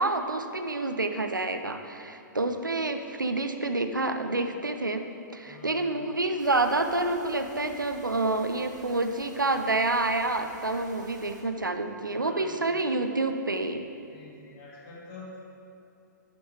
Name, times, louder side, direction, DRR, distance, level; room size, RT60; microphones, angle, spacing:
voice 1, 0.0-5.0 5.3-13.9, right 2 dB, 85° right, 7 dB, 0.6 m, -28 dB
voice 2, 5.5-6.0 12.1-12.9 14.1-15.4, left 2 dB, 35° left, -3 dB, 1.8 m, -47 dB
sound 1, 6.4-11.4, right 2 dB, 65° right, 1.6 m, -52 dB
8.8 x 5.3 x 4.9 m, 2.8 s
figure-of-eight pair, 115°, 10 cm